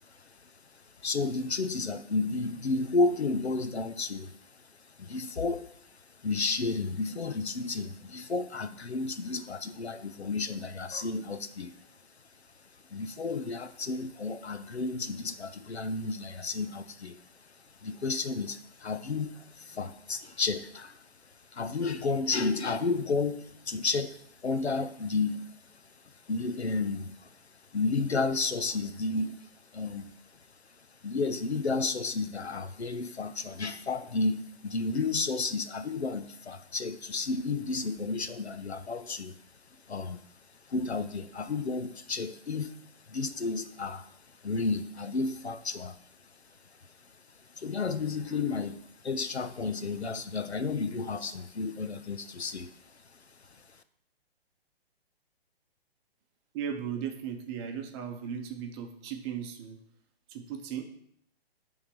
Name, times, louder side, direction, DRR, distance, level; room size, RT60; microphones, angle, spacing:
voice 1, 0.1-0.4 1.0-4.4 4.9-5.7 6.2-11.8 12.9-17.2 17.8-21.0 21.5-25.5 26.3-27.4 27.7-30.1 31.0-39.4 39.7-40.2 40.7-42.8 43.1-44.2 44.4-46.0 47.5-52.7 53.5-53.6, left 3 dB, 90° left, 10 dB, 0.8 m, -32 dB
voice 2, 56.5-59.8 60.3-60.8, right 8 dB, 25° right, 4 dB, 0.9 m, -36 dB
9.6 x 3.6 x 6.1 m, 0.67 s
figure-of-eight pair, 130°, 32 cm